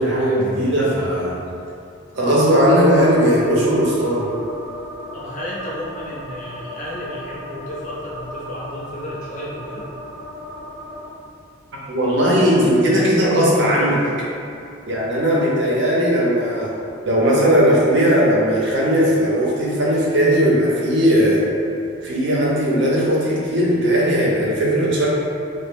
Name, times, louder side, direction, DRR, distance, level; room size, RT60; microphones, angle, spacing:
voice 1, 0.0-1.4 2.1-4.3 11.9-14.0 14.9-16.7 17.1-21.4 22.0-25.1, equal, 55° right, -5 dB, 0.6 m, -17 dB
sound 1, 2.1-11.1, left 1 dB, 15° right, 0.6 m, -36 dB
voice 2, 5.1-9.9, equal, 35° left, -6 dB, 0.6 m, -32 dB
2.9 x 2.0 x 3.4 m, 2.5 s
head